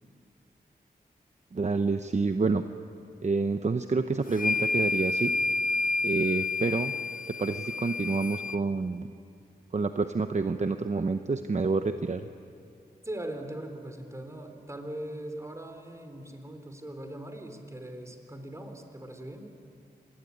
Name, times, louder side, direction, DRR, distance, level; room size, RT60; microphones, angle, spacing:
voice 1, 1.5-2.6 3.2-5.3 6.0-7.0 7.3-9.1 9.7-12.3, right 4 dB, 45° right, 8 dB, 0.9 m, -28 dB
sound 1, 4.3-8.6, left 3 dB, 55° left, 0.6 m, -29 dB
voice 2, 13.0-19.5, right 1 dB, 20° right, 5 dB, 3.7 m, -40 dB
26.0 x 20.5 x 9.5 m, 2.5 s
cardioid pair, 65°, 17 cm